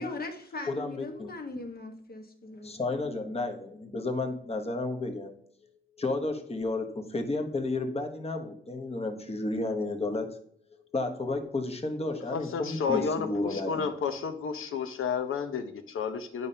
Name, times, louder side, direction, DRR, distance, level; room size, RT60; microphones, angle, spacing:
voice 1, 0.0-2.7, left 2 dB, 45° left, 4 dB, 1.3 m, -39 dB
voice 2, 0.7-1.3 2.6-5.3 6.0-10.4 10.9-13.9, left 2 dB, 30° left, 5 dB, 1.1 m, -32 dB
voice 3, 12.3-16.5, left 6 dB, 80° left, 8 dB, 0.8 m, -31 dB
9.4 x 5.3 x 2.8 m, 0.66 s
wide cardioid pair, 110°, 21 cm